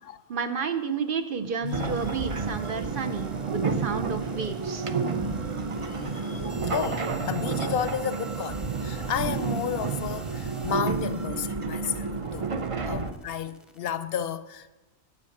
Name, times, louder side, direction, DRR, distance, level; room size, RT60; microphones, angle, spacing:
voice 1, 0.3-4.9, right 6 dB, 55° right, 0.9 m, -31 dB
voice 2, 1.6-2.2 5.2-5.3 5.8-12.5 12.8-14.7, left 8 dB, 65° left, 0.8 m, -33 dB
sound 1, 1.6-13.8, equal, ahead, 0.8 m, -51 dB
sound 2, 1.7-13.1, right 4 dB, 35° right, 0.6 m, -30 dB
11.5 x 7.8 x 6.5 m
omnidirectional pair, 1.1 m